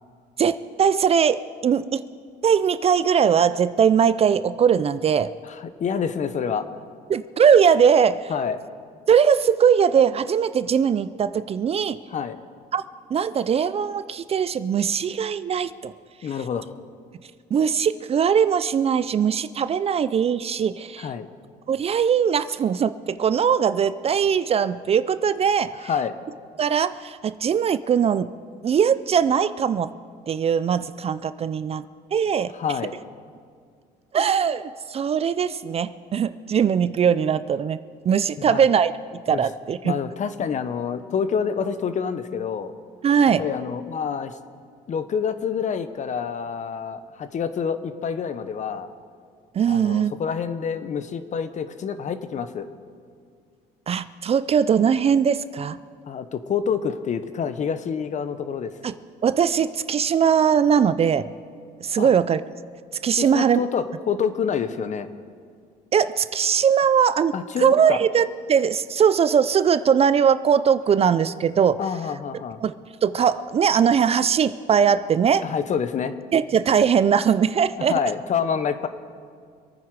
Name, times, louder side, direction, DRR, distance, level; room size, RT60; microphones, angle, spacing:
voice 1, 0.4-2.0 2.4-5.3 7.1-8.3 9.1-12.0 12.7-12.8 13.1-15.9 17.5-21.1 21.7-25.7 26.6-28.3 28.6-29.9 30.3-31.8 32.1-32.5 34.1-37.8 38.1-40.0 43.0-43.4 49.6-50.1 53.9-55.8 58.8-58.9 59.2-61.3 61.8-62.4 63.0-63.6 65.9-67.3 67.6-71.8 72.6-72.7 73.0-75.5 76.3-77.9, right 7 dB, 35° right, 14 dB, 0.4 m, -20 dB
voice 2, 5.4-6.6 8.3-8.6 12.1-12.4 16.2-16.7 21.0-21.3 25.8-26.1 32.5-33.0 38.4-38.6 39.3-39.4 39.8-42.7 43.4-44.4 44.9-48.9 49.7-52.7 56.1-58.7 62.0-62.1 63.2-65.1 67.3-68.0 71.8-72.6 75.4-76.2 77.8-78.9, left 7 dB, 45° left, 11 dB, 1.0 m, -27 dB
26.0 x 9.5 x 4.8 m, 2.1 s
cardioid pair, 110°, 17 cm